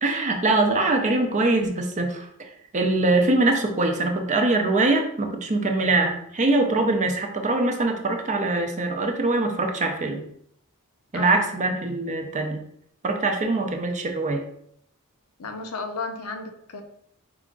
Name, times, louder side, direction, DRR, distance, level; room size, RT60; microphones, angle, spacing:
voice 1, 0.0-10.2 11.1-12.6 13.0-14.4, right 2 dB, 35° right, 4 dB, 0.5 m, -23 dB
voice 2, 11.1-11.4 15.4-16.8, left 3 dB, 70° left, 5 dB, 0.6 m, -33 dB
4.8 x 2.4 x 3.6 m, 0.70 s
head